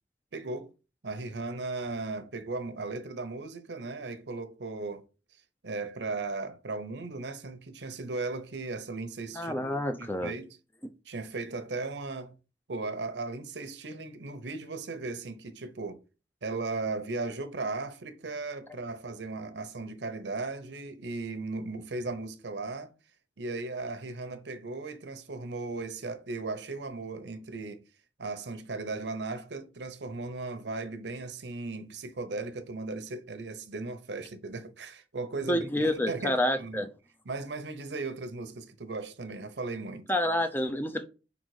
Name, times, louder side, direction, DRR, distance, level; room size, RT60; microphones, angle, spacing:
voice 1, 0.3-0.7 1.0-5.0 5.6-9.5 10.0-10.6 11.1-12.3 12.7-16.0 16.4-22.9 23.4-27.8 28.2-36.8 37.2-40.1, right 3 dB, 90° right, 0.9 m, -37 dB
voice 2, 9.3-10.3 35.5-36.9 40.1-41.1, left 1 dB, 10° left, 0.6 m, -28 dB
5.0 x 3.9 x 4.8 m
head